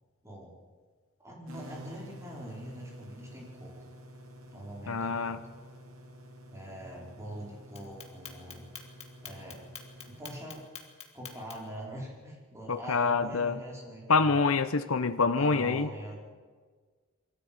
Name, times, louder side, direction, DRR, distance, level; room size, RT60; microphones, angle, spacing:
voice 1, 0.2-0.6 1.2-3.7 4.5-5.3 6.5-8.7 9.2-9.7 10.0-10.6 11.1-14.4 15.4-16.3, right 1 dB, 15° right, -2 dB, 4.9 m, -43 dB
sound 1, 1.5-10.5, right 1 dB, 70° right, 2.8 m, -50 dB
voice 2, 4.9-5.4 12.7-13.6 14.1-15.9, left 4 dB, 75° left, 10 dB, 0.9 m, -26 dB
Clock, 7.8-11.8, left 8 dB, 30° left, 2.2 m, -45 dB
22.5 x 13.5 x 8.9 m, 1.5 s
head